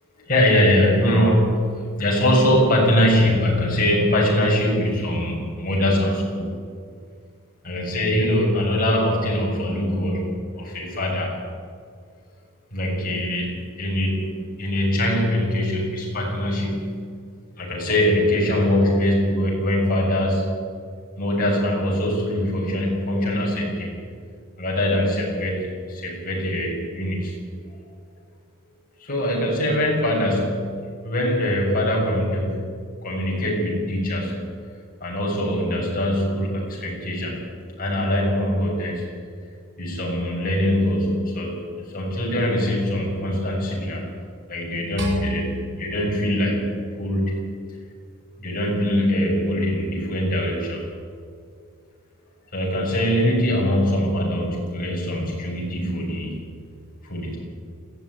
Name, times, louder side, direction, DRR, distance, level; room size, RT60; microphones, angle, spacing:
voice 1, 0.3-6.5 7.6-11.3 12.7-17.0 17.6-20.5 21.2-24.0 24.6-27.4 27.7-27.8 29.0-32.7 33.0-34.4 35.0-37.4 37.8-39.0 39.8-44.1 44.5-46.6 47.0-47.4 48.4-50.8 52.5-56.4 57.0-57.4, left 1 dB, 40° left, -3 dB, 7.4 m, -22 dB
sound 1, 45.0-47.4, right 1 dB, 55° right, 5.5 m, -34 dB
21.0 x 15.0 x 9.9 m, 2.1 s
head